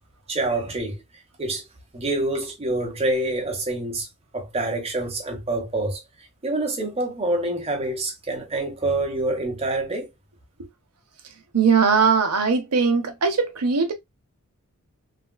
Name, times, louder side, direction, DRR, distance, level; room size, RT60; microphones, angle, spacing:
voice 1, 0.3-1.0 1.4-1.6 1.9-4.1 4.3-6.0 6.4-10.1, right 2 dB, 25° right, 1.0 m, -26 dB
voice 2, 11.5-13.9, right 5 dB, 85° right, 0.8 m, -20 dB
3.5 x 2.4 x 2.2 m
head